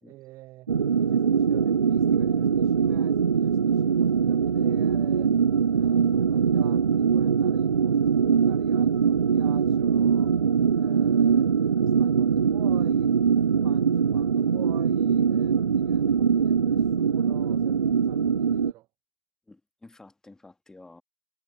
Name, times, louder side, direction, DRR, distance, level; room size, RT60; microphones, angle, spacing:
voice 1, 0.0-5.4 5.7-10.4 10.7-13.1 13.6-18.9, right 18 dB, 20° right, 0.7 m, -46 dB
sound 1, 0.7-18.7, right 6 dB, 70° right, 0.4 m, -22 dB
voice 2, 19.5-21.0, left 2 dB, 5° left, 1.8 m, -51 dB
figure-of-eight pair, 120°, 16 cm